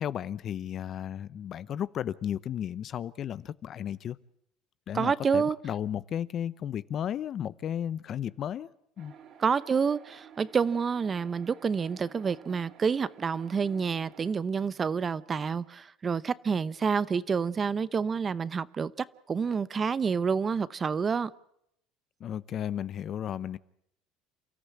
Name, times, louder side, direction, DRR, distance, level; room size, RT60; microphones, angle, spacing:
voice 1, 0.0-4.2 4.9-8.7 9.0-9.1 22.2-23.6, left 9 dB, 45° left, 0.8 m, -34 dB
voice 2, 4.9-5.6 9.4-21.3, right 6 dB, 25° right, 0.8 m, -28 dB
sound 1, 9.0-14.3, right 8 dB, 50° right, 3.8 m, -53 dB
29.0 x 14.0 x 8.4 m
supercardioid pair, 120°, 0 cm